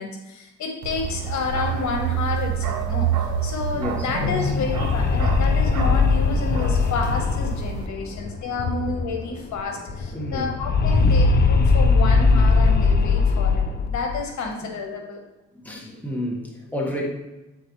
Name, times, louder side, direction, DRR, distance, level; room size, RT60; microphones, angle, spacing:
voice 1, 0.0-3.1 3.4-15.2, left 4 dB, 70° left, 3 dB, 1.1 m, -30 dB
Bark, 0.8-7.9, right 7 dB, 75° right, 0.9 m, -28 dB
voice 2, 3.7-4.4 10.1-10.5 14.6-14.7 15.5-17.1, left 1 dB, 5° left, -2 dB, 1.4 m, -30 dB
sound 1, 4.0-9.3 9.5-9.6 9.9-14.2, left 4 dB, 35° left, 0.5 m, -20 dB
8.4 x 4.0 x 3.1 m, 1.0 s
cardioid pair, 90°, 30 cm